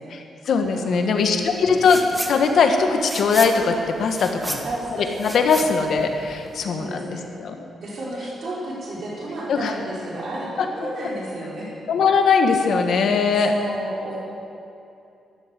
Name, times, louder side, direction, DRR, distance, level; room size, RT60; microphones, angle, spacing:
voice 1, 0.1-2.0 2.3-4.6 5.2-7.6 9.5-9.7 10.6-10.7 11.9-13.5, left 5 dB, 65° left, 4 dB, 1.5 m, -20 dB
voice 2, 0.7-1.8 4.4-5.1 5.5-5.9 6.7-7.3 7.8-11.7 13.4-14.2, right 1 dB, 55° right, -6 dB, 4.8 m, -32 dB
sound 1, 1.8-2.4 2.7-6.6, right 1 dB, 10° right, 1.5 m, -33 dB
13.0 x 12.0 x 7.8 m, 2.6 s
cardioid pair, 120°, 0 cm